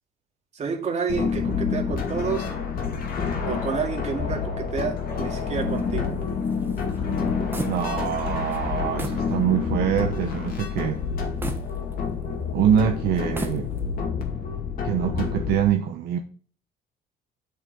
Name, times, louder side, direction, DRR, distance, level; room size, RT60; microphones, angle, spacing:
voice 1, 0.5-2.5 3.5-6.1, right 5 dB, 40° right, 2.2 m, -29 dB
sound 1, 1.1-15.6, left 6 dB, 60° left, 2.2 m, -28 dB
sound 2, 5.4-8.2 8.5-8.6 9.0-9.3 9.8-9.9 11.4-12.4 13.2-14.0, right 2 dB, 10° right, 1.2 m, -36 dB
voice 2, 7.6-11.0 12.5-13.7 14.8-16.2, right 9 dB, 75° right, 0.9 m, -24 dB
8.3 x 5.8 x 5.3 m
cardioid pair, 110°, 17 cm